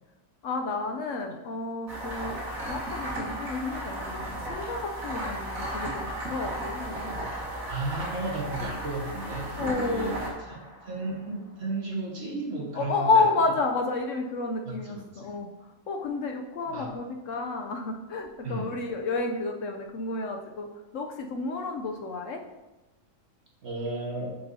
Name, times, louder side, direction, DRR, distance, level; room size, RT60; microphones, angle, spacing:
voice 1, 0.4-7.1 9.6-10.2 12.7-20.7 20.9-22.4, left 3 dB, 70° left, 3 dB, 0.9 m, -30 dB
sound 1, 1.9-11.2, right 1 dB, 70° right, 1.9 m, -35 dB
voice 2, 7.7-13.2 14.7-15.3 16.7-17.0 18.4-18.7 23.6-24.4, right 2 dB, 50° right, -2 dB, 1.6 m, -34 dB
7.9 x 6.1 x 2.7 m, 1.1 s
omnidirectional pair, 1.5 m